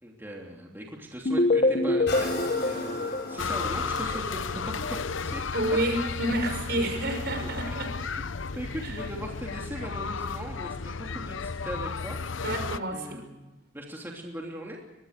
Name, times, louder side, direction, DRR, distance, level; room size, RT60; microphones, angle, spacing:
voice 1, 0.0-5.6 7.3-8.2 8.5-12.2 12.9-14.8, equal, 10° right, -1 dB, 3.1 m, -40 dB
sound 1, 1.3-4.2, left 2 dB, 45° left, 1.4 m, -26 dB
sound 2, 2.1-9.7 10.3-10.4, left 2 dB, 60° left, 7.9 m, -40 dB
sound 3, 3.4-12.8, left 5 dB, 85° left, 0.8 m, -33 dB
voice 2, 5.5-7.9 8.8-9.0 12.4-13.2, right 1 dB, 55° right, 6 dB, 5.9 m, -29 dB
24.0 x 22.0 x 6.7 m, 1.1 s
head